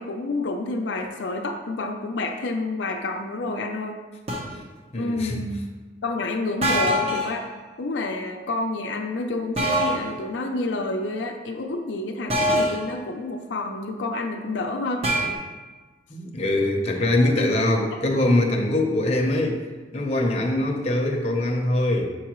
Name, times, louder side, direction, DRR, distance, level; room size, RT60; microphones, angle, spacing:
voice 1, 0.0-4.0 4.9-5.6 6.0-7.5 7.8-15.1 17.3-17.5 18.4-18.6, left 2 dB, 85° left, 2 dB, 0.5 m, -29 dB
sound 1, 4.3-4.6 6.6-7.4 9.6-10.1 12.3-12.9 15.0-15.3, equal, 35° right, 0.9 m, -23 dB
voice 2, 4.9-5.4 16.1-19.6 19.9-22.1, left 1 dB, 35° left, 0 dB, 0.8 m, -23 dB
7.3 x 4.6 x 3.1 m, 1.3 s
head